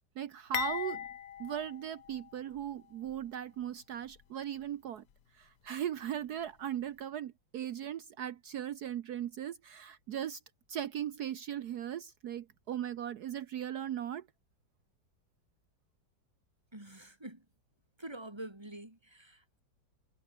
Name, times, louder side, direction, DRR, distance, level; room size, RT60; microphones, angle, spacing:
voice 1, 0.2-1.1 1.4-5.0 5.4-10.4 10.7-14.3, right 10 dB, 65° right, 1.2 m, -38 dB
sound 1, 0.5-2.7 3.1-3.2 4.1-4.2, left 10 dB, 55° left, 1.3 m, -39 dB
voice 2, 16.7-17.5 18.0-19.6, right 1 dB, 15° right, 4.2 m, -46 dB
omnidirectional pair, 2.0 m